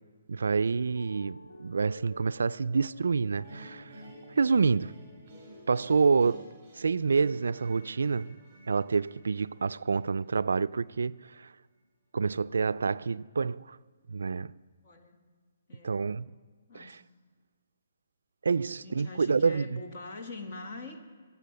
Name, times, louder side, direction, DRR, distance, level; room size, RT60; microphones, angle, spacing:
voice 1, 0.3-3.9 4.4-4.9 5.7-6.5 6.8-8.4 8.7-11.5 12.1-13.8 14.1-14.5 15.8-16.3 16.7-16.9 18.4-19.8, right 5 dB, 80° right, 0.3 m, -27 dB
sound 1, 0.8-6.4, equal, 60° left, 3.0 m, -51 dB
sound 2, 3.4-10.5, right 1 dB, 10° right, 2.9 m, -52 dB
voice 2, 14.8-15.2 15.7-16.1 16.7-17.0 18.6-21.0, left 2 dB, 30° left, 1.2 m, -44 dB
15.0 x 8.2 x 6.7 m
hypercardioid pair, 180°, 0 cm